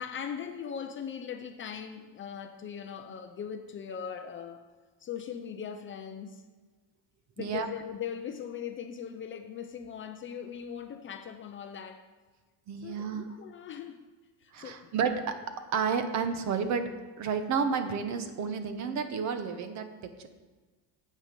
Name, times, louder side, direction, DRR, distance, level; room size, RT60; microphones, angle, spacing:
voice 1, 0.0-4.6 5.0-6.4 7.4-12.0 12.8-14.0 14.4-14.9, left 8 dB, 30° left, 6 dB, 0.4 m, -40 dB
voice 2, 12.7-13.3 14.5-15.4 15.7-16.9 17.2-20.3, right 6 dB, 40° right, 9 dB, 0.8 m, -31 dB
9.4 x 7.6 x 5.2 m, 1.3 s
cardioid pair, 165°, 41 cm